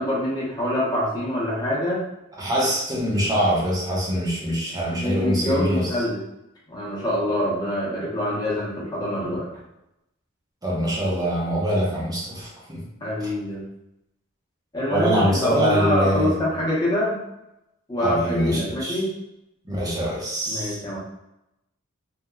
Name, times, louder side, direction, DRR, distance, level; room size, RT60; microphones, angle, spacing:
voice 1, 0.0-2.0 4.9-6.2 6.7-9.5 13.0-13.6 14.7-17.2 17.9-19.1 20.5-21.0, left 1 dB, 20° left, -7 dB, 0.7 m, -25 dB
voice 2, 2.4-6.0 10.6-12.8 14.9-16.3 18.0-19.0 19.6-20.8, equal, 15° right, -4 dB, 0.6 m, -24 dB
2.8 x 2.1 x 2.3 m, 0.87 s
head